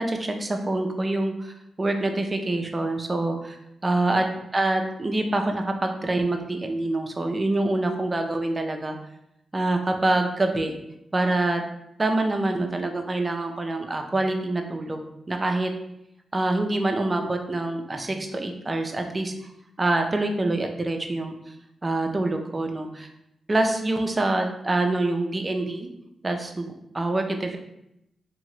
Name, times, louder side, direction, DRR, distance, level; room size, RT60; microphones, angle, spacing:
voice 1, 0.0-3.6 3.8-4.2 4.5-9.0 9.5-10.7 11.1-11.6 12.0-15.0 15.3-15.7 16.3-19.3 19.8-21.5 21.8-23.1 23.5-25.9 26.2-27.6, right 2 dB, 30° right, 4 dB, 0.5 m, -25 dB
2.8 x 2.5 x 3.1 m, 0.81 s
supercardioid pair, 50°, 0 cm